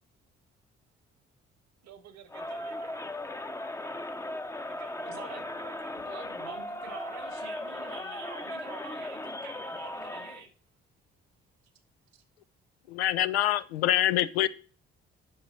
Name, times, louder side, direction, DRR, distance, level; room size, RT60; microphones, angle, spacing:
voice 1, 1.8-3.2 4.7-5.9 12.1-12.2, right 9 dB, 60° right, 1.3 m, -53 dB
Crowd, 2.3-10.4, left 1 dB, 10° left, 0.7 m, -38 dB
voice 2, 5.1-5.4 6.0-10.5, right 4 dB, 75° right, 2.1 m, -45 dB
voice 3, 12.9-14.5, left 13 dB, 90° left, 0.5 m, -25 dB
8.8 x 6.2 x 5.4 m
hypercardioid pair, 45°, 30 cm